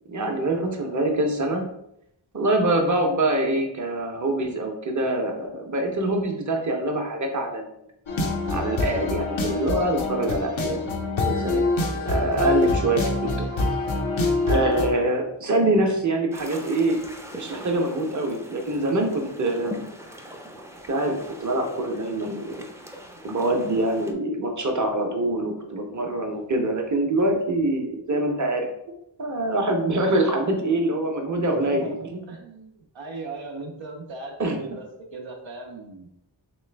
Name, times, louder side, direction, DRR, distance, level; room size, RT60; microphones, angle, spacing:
voice 1, 0.1-1.6 2.3-7.7 8.5-10.9 11.2-11.6 12.0-13.5 14.5-17.0 17.3-19.7 20.9-22.6 23.2-28.7 29.2-32.2 34.4-34.6, right 2 dB, 40° right, 2 dB, 0.7 m, -25 dB
sound 1, 8.1-14.9, left 2 dB, 90° left, 0.7 m, -25 dB
voice 2, 14.5-15.0 31.6-36.1, right 3 dB, 85° right, 1 dB, 0.7 m, -38 dB
sound 2, 16.3-24.1, equal, 5° right, 0.4 m, -42 dB
3.1 x 3.0 x 3.3 m, 0.78 s
wide cardioid pair, 45°, 45 cm